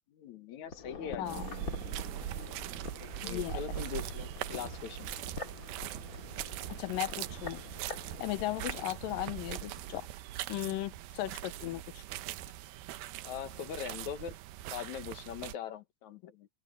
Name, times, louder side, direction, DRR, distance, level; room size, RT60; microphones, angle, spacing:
voice 1, 0.1-1.2 3.0-5.1 13.2-14.4 14.7-16.5, left 8 dB, 65° left, 2.3 m, -41 dB
sound 1, 0.6-9.7 10.0-10.1, left 3 dB, 30° left, 1.9 m, -46 dB
sound 2, 1.3-15.5, right 14 dB, 85° right, 2.7 m, -41 dB
voice 2, 3.2-3.6 6.7-7.6 8.2-10.1 10.5-12.0, left 15 dB, 80° left, 2.3 m, -36 dB
open air
omnidirectional pair, 4.2 m